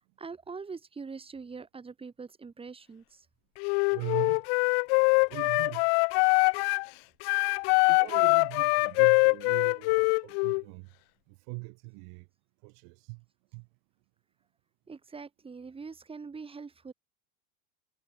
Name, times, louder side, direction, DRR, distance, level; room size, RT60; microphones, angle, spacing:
voice 1, 0.0-3.3 14.9-16.9, right 5 dB, 10° right, 3.7 m, -43 dB
Wind instrument woodwind instrument, 3.6-6.9 7.2-10.6, left 35 dB, 40° left, 0.5 m, -24 dB
voice 2, 3.9-4.4 5.3-5.9 7.9-10.9 11.3-12.3 12.6-13.2 13.5-13.7, right 40 dB or more, 50° right, 1.7 m, -41 dB
supercardioid pair, 155°, 47 cm